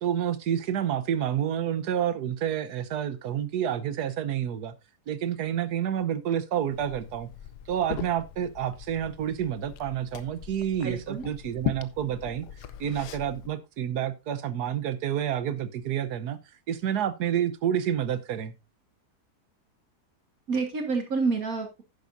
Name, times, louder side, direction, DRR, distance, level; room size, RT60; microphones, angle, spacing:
voice 1, 0.0-4.7 5.1-7.3 7.7-12.5 12.8-16.4 16.7-18.5, right 9 dB, 75° right, 1.4 m, -29 dB
Liquid, 6.7-13.5, left 10 dB, 85° left, 1.3 m, -39 dB
voice 2, 10.8-11.3 20.5-21.8, right 4 dB, 60° right, 2.1 m, -28 dB
10.5 x 10.5 x 2.6 m
omnidirectional pair, 1.7 m